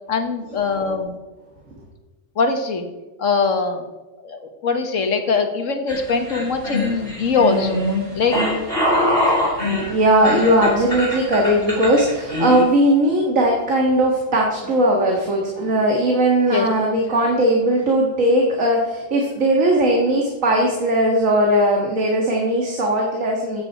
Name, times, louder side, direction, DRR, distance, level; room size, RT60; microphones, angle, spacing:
voice 1, 0.1-1.2 2.4-2.9 3.2-3.8 4.2-7.8 8.1-8.4 16.5-16.7, left 4 dB, 75° left, 6 dB, 1.7 m, -21 dB
sound 1, 5.9-12.6, left 1 dB, 45° right, 4.9 m, -22 dB
voice 2, 9.9-23.6, right 1 dB, 85° right, -1 dB, 2.1 m, -18 dB
14.5 x 8.5 x 4.5 m, 1.1 s
omnidirectional pair, 1.3 m